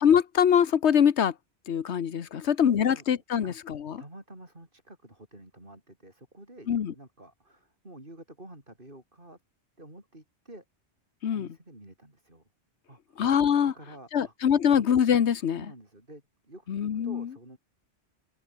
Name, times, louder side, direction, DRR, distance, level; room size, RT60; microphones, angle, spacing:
voice 1, 0.0-1.3 1.7-3.5 6.7-6.9 11.2-11.5 13.2-13.7 14.1-15.6 16.7-17.3, left 8 dB, 75° left, 1.3 m, -23 dB
voice 2, 2.8-3.6 4.0-9.4 9.8-10.7 11.3-12.4 12.9-13.2 13.6-14.3 14.6-14.8 15.5-17.6, right 1 dB, 50° right, 6.9 m, -50 dB
omnidirectional pair, 1.2 m